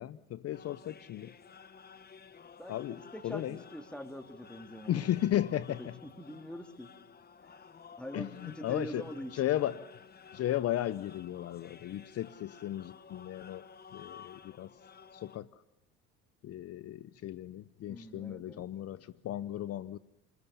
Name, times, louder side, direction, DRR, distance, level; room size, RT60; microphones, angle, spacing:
voice 1, 0.0-1.3 2.7-3.6 4.9-5.9 8.1-9.0 9.3-9.8 10.3-13.6 13.9-14.7 15.1-15.5 16.4-20.0, left 12 dB, 50° left, 0.8 m, -35 dB
sound 1, 0.5-15.4, left 6 dB, 30° left, 1.3 m, -54 dB
voice 2, 2.6-5.3 5.8-6.9 8.0-9.5 17.9-18.6, equal, 5° left, 2.9 m, -44 dB
29.0 x 20.0 x 7.0 m
supercardioid pair, 80°, 32 cm